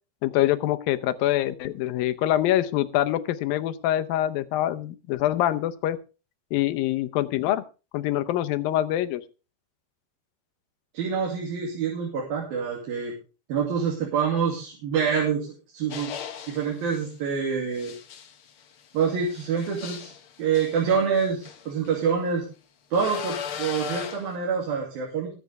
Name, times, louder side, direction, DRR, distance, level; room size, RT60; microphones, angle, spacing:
voice 1, 0.2-6.0 6.5-7.6 7.9-9.2, left 13 dB, 80° left, 13 dB, 2.6 m, -25 dB
voice 2, 10.9-13.1 13.5-15.5 15.7-16.1 16.5-17.9 18.9-20.1 20.4-22.4 22.9-25.3, right 6 dB, 80° right, -2 dB, 4.4 m, -26 dB
sound 1, 15.9-17.0 17.7-22.0 22.9-24.3, left 8 dB, 60° left, 1.4 m, -38 dB
21.0 x 8.3 x 3.5 m, 0.33 s
omnidirectional pair, 4.2 m